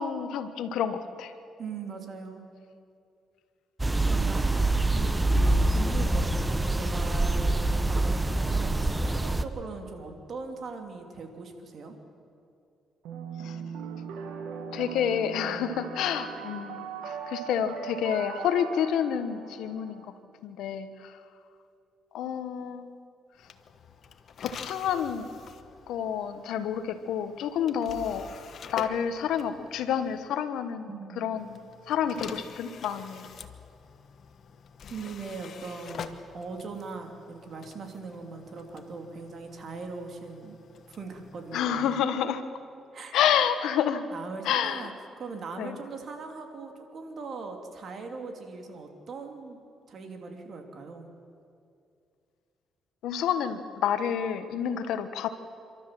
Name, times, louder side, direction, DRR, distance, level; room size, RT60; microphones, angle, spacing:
voice 1, 0.0-1.3 13.4-13.6 14.7-20.1 20.4-21.2 22.1-22.9 24.4-25.3 25.9-28.3 28.7-33.3 41.5-42.4 43.1-44.0 44.4-44.9 45.6-45.8 53.0-55.3, left 8 dB, 80° left, 10 dB, 1.2 m, -29 dB
voice 2, 1.6-2.4 4.0-4.6 4.9-8.8 9.1-11.9 30.9-31.3 34.9-40.6 40.9-41.9 42.9-43.1 44.1-44.9 45.2-49.6 49.9-51.1, right 4 dB, 55° right, 4 dB, 2.9 m, -40 dB
sound 1, 3.8-9.4, right 2 dB, 15° right, 1.0 m, -25 dB
sound 2, 13.0-20.1, right 6 dB, 85° right, 1.7 m, -39 dB
sound 3, 23.4-30.3 31.4-41.9, left 6 dB, 60° left, 1.2 m, -46 dB
28.0 x 13.0 x 7.6 m, 2.5 s
cardioid pair, 85°, 0 cm